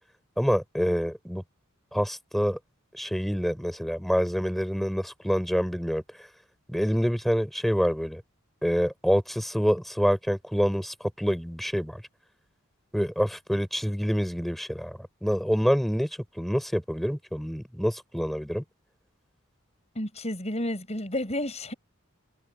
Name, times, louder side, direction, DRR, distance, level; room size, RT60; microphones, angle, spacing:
voice 1, 0.4-1.4 1.9-2.6 2.9-6.0 6.7-8.2 8.6-12.0 12.9-16.1 16.4-18.6, equal, ahead, 7.3 m, -26 dB
voice 2, 19.9-21.7, left 1 dB, 30° left, 7.4 m, -31 dB
head